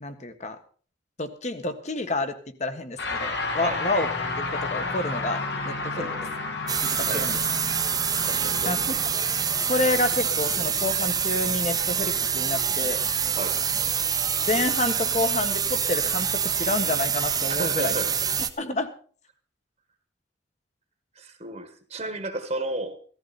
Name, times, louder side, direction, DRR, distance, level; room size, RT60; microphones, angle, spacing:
voice 1, 0.0-0.6 1.2-4.1 4.4-6.1 6.8-7.3 8.6-8.8 9.6-13.0 14.5-17.9 18.6-18.9, left 2 dB, 40° left, 1.5 m, -29 dB
sound 1, 3.0-12.5, left 3 dB, 60° left, 2.0 m, -33 dB
voice 2, 3.5-3.9 5.9-6.3 7.0-7.3 8.3-9.0 13.3-13.6 17.5-18.2 21.1-23.0, right 2 dB, 35° right, 1.5 m, -33 dB
sound 2, 6.7-18.5, right 7 dB, 20° right, 0.9 m, -26 dB
16.0 x 14.0 x 4.3 m
head